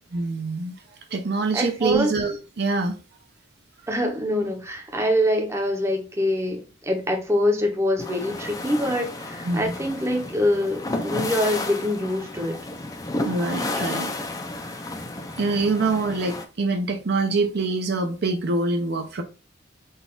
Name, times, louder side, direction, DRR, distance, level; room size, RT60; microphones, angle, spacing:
voice 1, 0.1-0.7 1.1-3.0 9.5-9.7 13.3-14.1 15.4-19.2, right 3 dB, 55° right, 0.5 m, -25 dB
voice 2, 1.5-2.1 3.9-12.6, left 1 dB, 15° right, 0.7 m, -24 dB
sound 1, 8.0-16.5, left 2 dB, 20° left, 0.4 m, -32 dB
3.9 x 2.4 x 3.7 m
head